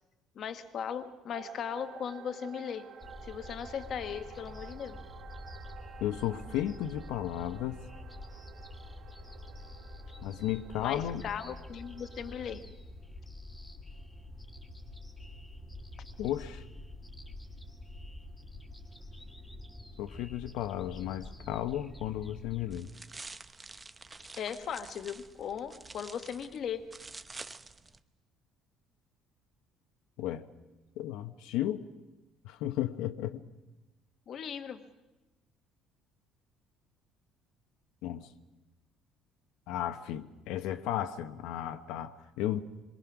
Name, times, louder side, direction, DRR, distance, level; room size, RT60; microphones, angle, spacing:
voice 1, 0.3-2.9 3.2-5.0 10.8-12.6 24.4-26.8 34.3-34.8, left 8 dB, 40° left, 9 dB, 1.2 m, -38 dB
sound 1, 1.3-12.6, right 8 dB, 45° right, 1.3 m, -52 dB
sound 2, 3.0-22.8, left 1 dB, 5° left, 1.9 m, -47 dB
voice 2, 6.0-7.8 10.2-11.3 16.2-16.6 20.0-22.9 30.2-30.5 31.0-31.8 32.4-33.4 38.0-38.3 39.7-42.6, left 12 dB, 80° left, 9 dB, 1.0 m, -34 dB
sound 3, 22.7-28.0, right 3 dB, 15° right, 0.7 m, -48 dB
27.5 x 22.5 x 6.0 m, 1.1 s
cardioid pair, 165°, 0 cm